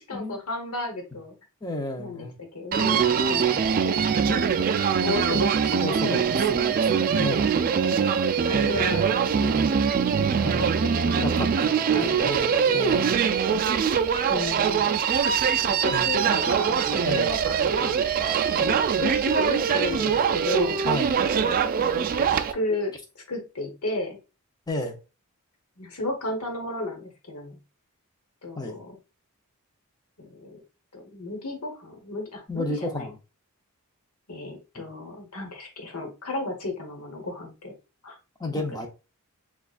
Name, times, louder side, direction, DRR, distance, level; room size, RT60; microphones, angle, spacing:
voice 1, 0.0-1.3 2.0-2.3 2.5-4.4 5.0-6.4 7.7-9.0 9.4-9.7 10.4-11.4 11.9-13.0 14.3-15.0 15.7-18.0 18.5-20.8 22.0-22.9 23.3-24.2 25.8-27.6 28.4-29.0 30.2-30.6 30.9-33.1 34.3-37.8 38.0-38.2 38.5-38.6, left 2 dB, 75° left, 1.1 m, -33 dB
voice 2, 1.6-2.4 5.8-7.5 10.4-10.7 11.2-13.3 15.9-16.1 17.0-17.3 20.8-21.2 24.7-25.0 28.6-28.8 32.5-33.2 34.8-34.9 38.4-38.9, left 2 dB, 15° left, 0.7 m, -32 dB
Human voice, 2.7-22.5, right 7 dB, 40° right, 0.3 m, -23 dB
6.4 x 2.3 x 2.4 m
head